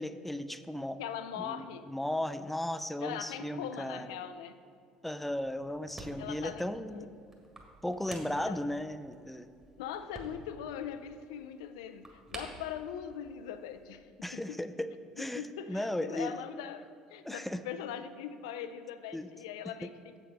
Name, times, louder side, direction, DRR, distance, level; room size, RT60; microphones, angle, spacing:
voice 1, 0.0-1.0 1.4-4.1 5.0-7.0 7.8-9.5 14.2-15.4 15.7-16.3 17.2-17.6 19.1-19.3 19.8-19.9, left 1 dB, 5° left, 12 dB, 0.4 m, -36 dB
voice 2, 1.0-1.9 3.0-4.6 6.2-6.6 6.9-7.1 8.5-8.6 9.8-14.6 15.2-20.2, left 9 dB, 70° left, 11 dB, 0.4 m, -41 dB
sound 1, 5.3-14.0, right 1 dB, 20° right, 1.9 m, -51 dB
7.7 x 7.5 x 4.9 m, 2.3 s
figure-of-eight pair, 60°, 3 cm